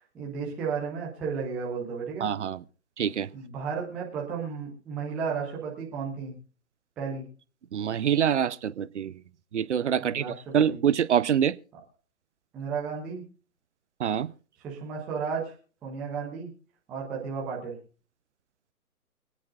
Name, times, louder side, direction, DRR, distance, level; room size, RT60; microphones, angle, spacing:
voice 1, 0.1-2.3 3.3-6.4 7.0-7.2 10.0-10.8 12.5-13.3 14.6-15.5 15.8-16.5 16.9-17.8, right 5 dB, ahead, 0.5 m, -33 dB
voice 2, 2.2-2.6 3.0-3.3 7.7-9.1 9.5-10.2 10.5-11.5 14.0-14.3, right 9 dB, 50° right, 0.6 m, -25 dB
25.0 x 9.5 x 2.4 m
figure-of-eight pair, 125°, 44 cm